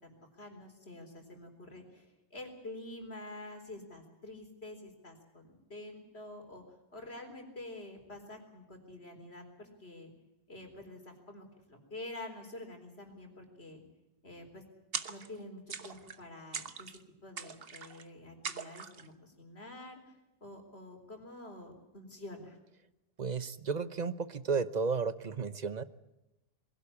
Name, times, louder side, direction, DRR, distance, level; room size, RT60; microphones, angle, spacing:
voice 1, 0.0-6.6 6.9-10.1 10.5-13.8 14.2-14.6 15.1-20.0 20.4-22.6, left 2 dB, 85° left, 4 dB, 4.2 m, -48 dB
sound 1, 14.9-15.4 15.7-16.2 16.5-17.0 17.4-18.0 18.4-19.1, right 6 dB, 65° right, 1.3 m, -41 dB
voice 2, 23.2-25.8, right 5 dB, 45° right, 14 dB, 1.0 m, -33 dB
21.5 x 16.5 x 8.5 m, 0.97 s
omnidirectional pair, 1.0 m